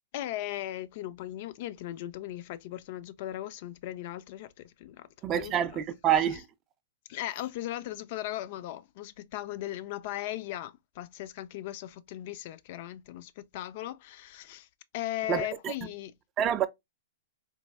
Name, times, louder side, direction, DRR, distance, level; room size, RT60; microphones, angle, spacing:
voice 1, 0.1-5.1 5.4-5.8 7.1-14.7 14.9-16.1, left 14 dB, 50° left, 0.3 m, -38 dB
voice 2, 5.2-6.4 15.3-15.7 16.4-16.7, right 10 dB, 30° right, 0.3 m, -27 dB
4.0 x 2.5 x 2.2 m
hypercardioid pair, 130°, 0 cm